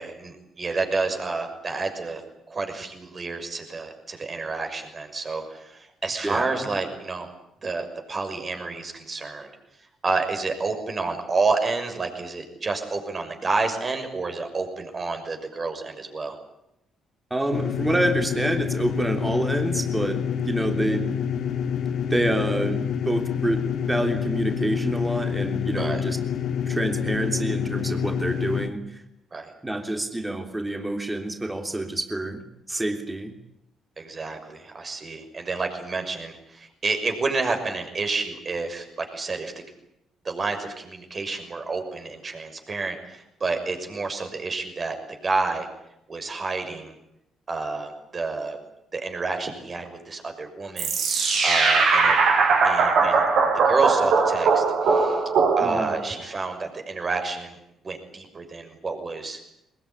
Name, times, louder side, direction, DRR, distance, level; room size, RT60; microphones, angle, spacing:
voice 1, 0.0-2.2 2.5-7.3 7.6-9.5 10.0-16.4 25.7-26.0 29.3-29.5 34.0-39.5 40.2-45.0 45.2-45.7 46.1-46.9 47.5-48.6 48.9-51.0 51.4-52.2 52.6-53.2 53.6-55.2 55.6-57.6 57.8-59.4, right 3 dB, 35° right, 5 dB, 6.3 m, -29 dB
voice 2, 6.2-6.7 17.3-21.1 22.1-23.6 23.9-26.2 26.7-28.8 29.6-33.4 55.6-56.0, right 1 dB, 15° right, 5 dB, 3.3 m, -27 dB
sound 1, 17.5-28.7, left 8 dB, 75° left, 2.2 m, -27 dB
sound 2, 50.8-56.1, right 4 dB, 70° right, 7.1 m, -20 dB
22.0 x 21.5 x 9.9 m, 0.83 s
cardioid pair, 90°, 0 cm